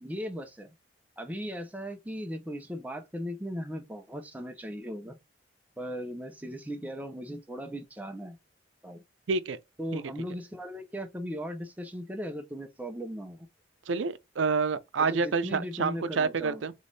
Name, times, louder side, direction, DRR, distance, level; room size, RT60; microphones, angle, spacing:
voice 1, 0.0-0.7 1.2-5.2 5.8-8.4 8.8-9.0 9.8-13.5 15.0-16.6, equal, 10° right, 0.6 m, -38 dB
voice 2, 9.3-9.6 9.9-10.0 13.9-16.7, right 4 dB, 90° right, 0.5 m, -28 dB
3.5 x 3.0 x 4.0 m
head